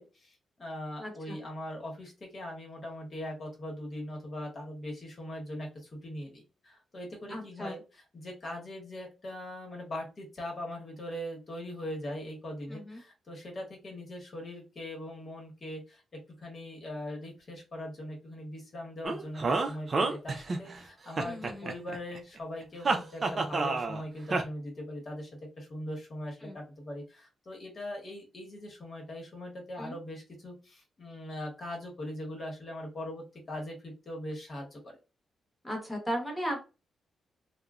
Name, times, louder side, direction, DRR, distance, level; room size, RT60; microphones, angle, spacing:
voice 1, 0.0-25.3 25.6-35.0, left 1 dB, 40° left, 0 dB, 1.1 m, -41 dB
voice 2, 1.0-1.4 7.3-7.8 12.7-13.0 21.2-21.7 26.4-26.6 29.8-30.0 35.6-36.6, equal, 10° left, 1 dB, 1.0 m, -36 dB
sound 1, 19.0-20.8 21.2-22.2 22.8-24.0 24.3-24.4, right 3 dB, 35° right, 0.5 m, -29 dB
3.0 x 2.1 x 2.4 m, 0.30 s
cardioid pair, 115°, 0 cm